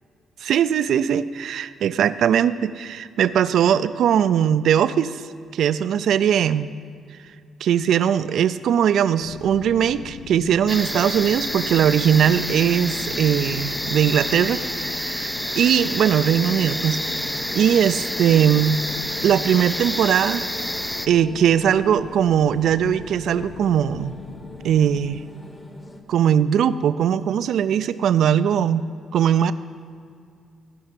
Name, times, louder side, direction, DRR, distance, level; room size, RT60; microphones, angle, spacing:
voice 1, 0.4-5.2 5.5-6.7 7.6-17.0 17.5-18.8 19.2-20.5 21.1-24.1 24.6-25.3 26.1-28.9 29.1-29.5, right 9 dB, 70° right, 14 dB, 0.4 m, -20 dB
sound 1, 9.2-25.2, left 9 dB, 85° left, 0.4 m, -41 dB
sound 2, 10.7-21.1, equal, 5° left, 0.3 m, -28 dB
sound 3, 15.7-26.0, left 1 dB, 25° left, 1.2 m, -41 dB
15.0 x 5.6 x 6.0 m, 2.3 s
cardioid pair, 90°, 0 cm